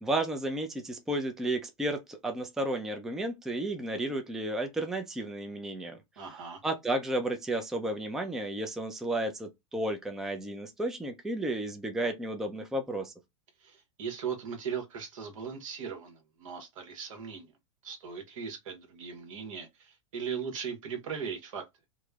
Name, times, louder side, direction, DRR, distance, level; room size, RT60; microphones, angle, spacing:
voice 1, 0.0-6.0 6.6-13.1, right 1 dB, ahead, 0.3 m, -32 dB
voice 2, 6.2-6.6 13.6-17.5 17.8-21.6, right 6 dB, 70° right, 1.0 m, -38 dB
3.0 x 2.0 x 2.3 m
hypercardioid pair, 120°, 17 cm